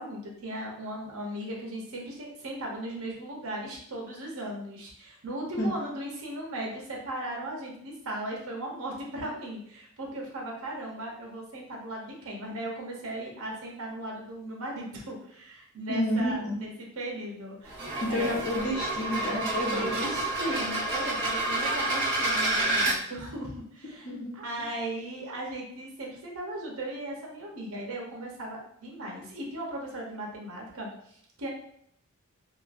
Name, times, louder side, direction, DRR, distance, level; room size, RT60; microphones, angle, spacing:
voice 1, 0.0-17.8 18.1-18.3 19.7-24.1 24.3-30.9 31.4-31.5, right 1 dB, 70° right, -1 dB, 0.8 m, -37 dB
voice 2, 15.9-16.5 18.0-20.0 24.0-24.7, left 1 dB, 50° left, -3 dB, 0.8 m, -30 dB
sound 1, 17.6-23.0, right 2 dB, 20° right, 1.4 m, -29 dB
3.0 x 2.2 x 2.5 m, 0.69 s
head